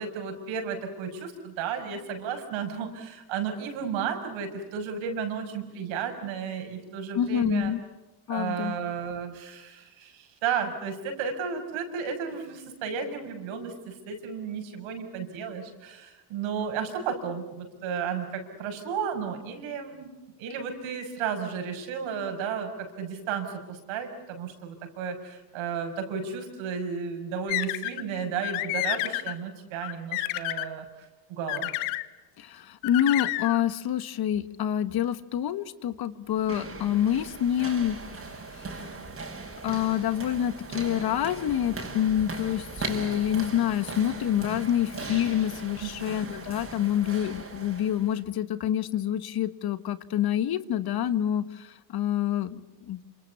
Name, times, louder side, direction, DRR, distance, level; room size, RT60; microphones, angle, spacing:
voice 1, 0.0-7.7 8.3-20.1 20.4-31.7 45.8-46.2, right 6 dB, 75° right, 5 dB, 6.5 m, -33 dB
voice 2, 7.1-7.8 8.3-8.7 32.4-38.0 38.5-38.9 39.6-52.6 52.9-53.0, left 10 dB, 50° left, 14 dB, 1.5 m, -27 dB
sound 1, 27.5-28.0 28.4-29.3 29.8-30.7 31.5-32.1 32.8-33.6, left 18 dB, 85° left, 1.4 m, -30 dB
sound 2, 36.3-48.2, right 3 dB, 25° right, 5.8 m, -39 dB
27.5 x 27.0 x 7.1 m, 1.1 s
cardioid pair, 105°, 47 cm